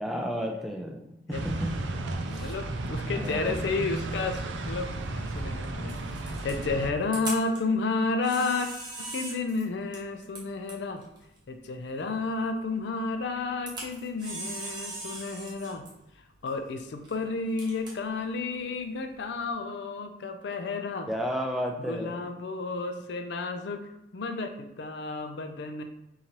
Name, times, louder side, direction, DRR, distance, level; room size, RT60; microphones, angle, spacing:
voice 1, 0.0-2.0 2.3-2.5 3.1-3.9 21.1-22.3, equal, ahead, 0 dB, 0.3 m, -33 dB
sound 1, 1.3-6.9, right 2 dB, 80° right, 0.4 m, -34 dB
voice 2, 2.1-8.7 9.0-11.0 11.5-15.8 16.4-21.1 21.9-25.8, left 3 dB, 70° left, 7 dB, 0.4 m, -32 dB
Camera, 4.1-19.5, right 2 dB, 25° right, 0.9 m, -43 dB
3.8 x 2.8 x 3.0 m, 0.90 s
head